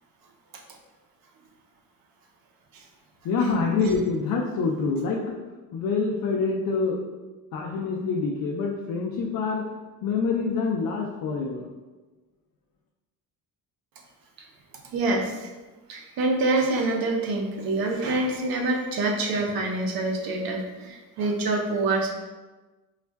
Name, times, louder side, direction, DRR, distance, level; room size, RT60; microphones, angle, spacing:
voice 1, 3.2-5.4 5.7-7.0 7.5-9.6 10.0-11.7, left 4 dB, 70° left, -1 dB, 0.5 m, -26 dB
voice 2, 14.9-15.5 15.9-22.1, right 2 dB, 80° right, 2 dB, 0.7 m, -26 dB
5.1 x 2.4 x 2.2 m, 1.2 s
cardioid pair, 170°, 35 cm